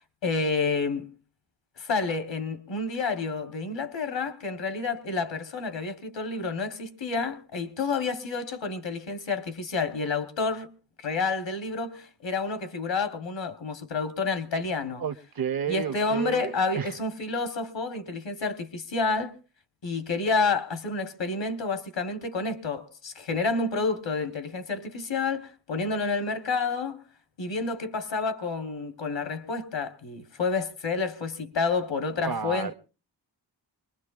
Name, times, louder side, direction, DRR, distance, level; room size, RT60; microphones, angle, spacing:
voice 1, 0.2-1.1 1.8-10.7 11.0-15.0 15.7-19.3 19.8-27.0 27.4-32.7, left 4 dB, 85° left, 1.3 m, -29 dB
voice 2, 15.0-16.9 32.2-32.7, right 7 dB, 55° right, 0.7 m, -31 dB
24.0 x 20.5 x 2.4 m
wide cardioid pair, 85°, 43 cm